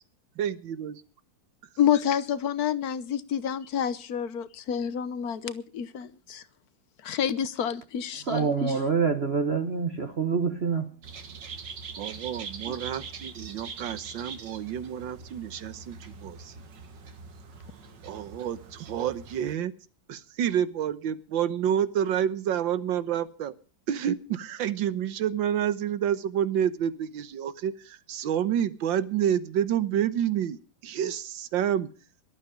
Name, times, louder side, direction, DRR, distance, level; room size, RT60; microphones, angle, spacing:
voice 1, 0.4-1.0 12.0-16.5 18.0-19.7 20.1-23.5 23.9-31.9, right 9 dB, 85° right, 1.8 m, -29 dB
voice 2, 1.8-6.4 7.0-8.2, left 9 dB, 60° left, 1.3 m, -28 dB
voice 3, 8.1-10.8 12.7-12.8, right 5 dB, 40° right, 1.2 m, -26 dB
sound 1, 11.0-19.6, right 5 dB, 70° right, 2.1 m, -43 dB
18.0 x 12.0 x 5.1 m
omnidirectional pair, 2.0 m